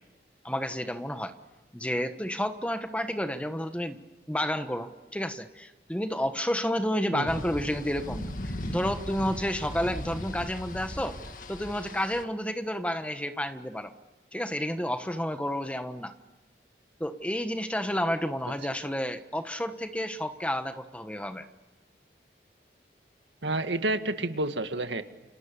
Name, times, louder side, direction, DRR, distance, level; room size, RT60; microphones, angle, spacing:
voice 1, 0.4-1.3 1.7-4.0 4.3-11.2 11.5-13.9 14.3-16.1 17.0-21.5, equal, 5° left, 8 dB, 1.2 m, -30 dB
sound 1, 7.3-12.2, left 1 dB, 45° left, 1.8 m, -38 dB
voice 2, 23.4-25.0, right 2 dB, 90° right, 8 dB, 2.0 m, -29 dB
29.5 x 27.0 x 7.0 m, 1.2 s
head